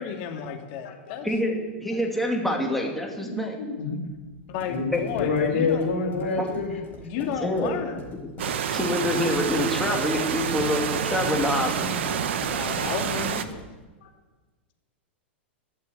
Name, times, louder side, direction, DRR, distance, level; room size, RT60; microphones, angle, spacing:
voice 1, 0.0-1.3 4.5-5.8 7.0-8.0 12.5-13.4, left 8 dB, 50° left, 3 dB, 2.4 m, -32 dB
voice 2, 0.8-1.2 2.8-2.9 3.2-4.0 4.7-6.8 7.2-7.3 14.0-14.1, left 4 dB, 85° left, 2 dB, 3.8 m, -28 dB
voice 3, 1.8-3.6 4.9-5.0 6.4-6.5 7.4-7.7 8.7-12.0, left 1 dB, 5° left, 0 dB, 2.7 m, -26 dB
sound 1, 4.0-13.8, left 3 dB, 30° left, 4.5 m, -42 dB
sound 2, 8.4-13.4, right 8 dB, 75° right, 1.1 m, -28 dB
13.0 x 6.8 x 9.9 m, 1.2 s
hypercardioid pair, 115°, 6 cm